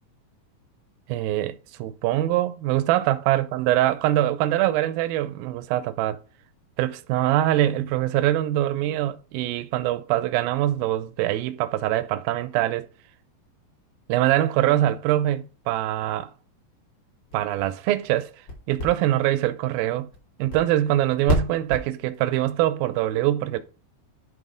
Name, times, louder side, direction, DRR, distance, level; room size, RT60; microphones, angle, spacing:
voice 1, 1.1-6.2 6.8-12.9 14.1-16.3 17.3-18.3 18.7-20.1 20.4-23.6, right 14 dB, 85° right, 2.4 m, -23 dB
sound 1, 17.1-22.2, left 1 dB, 45° left, 4.1 m, -33 dB
11.0 x 3.9 x 5.0 m
omnidirectional pair, 4.1 m